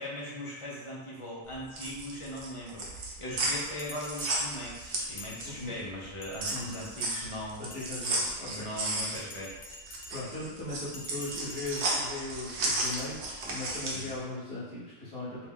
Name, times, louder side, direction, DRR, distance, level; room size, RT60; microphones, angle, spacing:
voice 1, 0.0-7.6 8.5-9.5 13.9-14.1, left 1 dB, 50° left, -5 dB, 0.4 m, -39 dB
sound 1, 1.5-5.7 6.0-14.1, right 2 dB, 85° right, 0.9 m, -33 dB
Bell, 3.8-5.8 6.2-7.2 7.6-8.6 9.1-10.4 10.9-12.2 12.8-13.0, left 1 dB, 65° left, 0.7 m, -47 dB
voice 2, 5.4-5.8 6.5-6.8 7.6-9.0 10.1-15.5, left 2 dB, 30° left, -12 dB, 0.8 m, -39 dB
2.4 x 2.1 x 3.5 m, 1.2 s
omnidirectional pair, 1.1 m